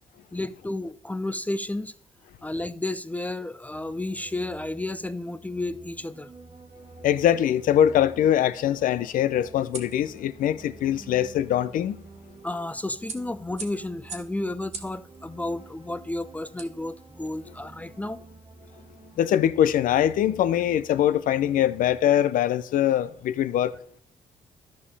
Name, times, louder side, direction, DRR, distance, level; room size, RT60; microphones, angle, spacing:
voice 1, 0.3-1.9 2.4-6.3 12.4-18.2, left 2 dB, 10° left, 0.3 m, -32 dB
sound 1, 3.7-22.0, right 3 dB, 30° right, 1.2 m, -49 dB
voice 2, 7.0-12.0 19.2-23.8, left 11 dB, 80° left, 0.5 m, -22 dB
sound 2, 7.5-17.4, right 4 dB, 55° right, 1.4 m, -47 dB
13.5 x 5.3 x 3.3 m
cardioid pair, 95°, 14 cm